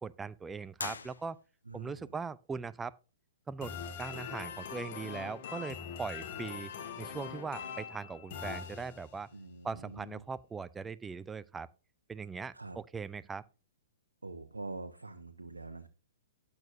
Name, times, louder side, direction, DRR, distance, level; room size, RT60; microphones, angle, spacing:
voice 1, 0.0-1.4 1.7-3.0 3.5-6.7 7.0-9.3 9.6-11.7 12.1-13.4, right 5 dB, 10° right, 0.4 m, -40 dB
sound 1, 0.7-1.8, left 5 dB, 70° left, 0.8 m, -42 dB
voice 2, 1.7-2.1 9.3-10.2 12.5-12.8 14.2-15.9, right 3 dB, 75° right, 0.9 m, -45 dB
sound 2, 3.6-9.3, left 7 dB, 45° left, 1.7 m, -42 dB
12.0 x 8.4 x 2.6 m
figure-of-eight pair, 115°, 0 cm